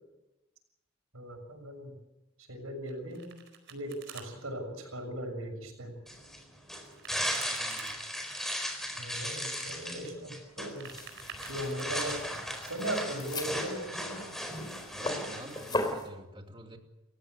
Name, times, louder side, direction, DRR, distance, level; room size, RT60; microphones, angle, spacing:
voice 1, 1.1-1.9 2.5-3.3 3.7-6.0 9.0-10.9 11.4-12.2 12.6-14.3, right 1 dB, 80° right, 5 dB, 6.8 m, -38 dB
Domestic sounds home sounds, 2.9-4.3 6.8-8.0 10.5-12.2, right 7 dB, 55° right, 4.4 m, -49 dB
sound 1, 6.1-15.9, equal, ahead, 4.5 m, -37 dB
voice 2, 7.6-8.0 14.9-16.8, right 1 dB, 25° right, 4 dB, 2.5 m, -47 dB
sound 2, 10.8-16.1, left 2 dB, 20° left, 3.8 m, -39 dB
30.0 x 15.5 x 8.2 m, 0.99 s
head